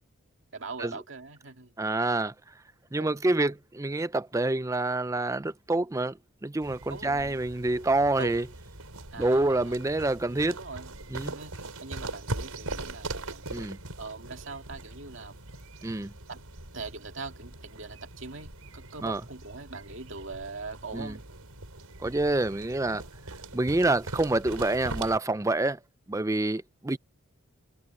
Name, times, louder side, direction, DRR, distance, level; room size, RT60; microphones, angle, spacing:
voice 1, 0.5-1.7 3.0-3.3 6.9-7.4 8.2-8.4 9.1-9.7 10.2-10.9 11.3-13.4 14.0-15.3 15.8-16.4 16.7-21.3, right 3 dB, 55° right, 2.4 m, -42 dB
voice 2, 1.8-2.3 2.9-6.2 6.4-8.4 9.2-10.6 11.1-11.4 13.5-13.8 15.8-16.1 19.0-19.2 20.9-21.2 22.0-23.0 23.5-25.8 26.1-27.0, right 2 dB, 15° right, 0.4 m, -27 dB
sound 1, 6.6-25.2, right 2 dB, 85° right, 5.3 m, -41 dB
head